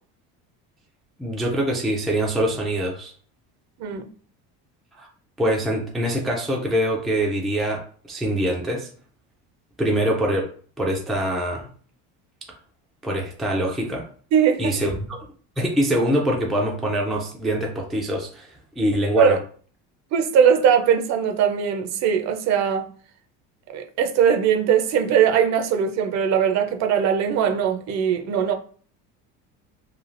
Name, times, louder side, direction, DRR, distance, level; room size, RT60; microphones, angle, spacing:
voice 1, 1.2-3.1 5.0-5.1 5.4-8.9 9.8-11.7 13.0-14.1 14.6-15.2 15.6-19.4, equal, ahead, 0.3 m, -24 dB
voice 2, 14.3-14.7 19.2-19.4 20.1-22.9 23.7-28.5, right 8 dB, 50° right, 0.5 m, -20 dB
3.2 x 2.3 x 2.5 m
cardioid pair, 135°, 34 cm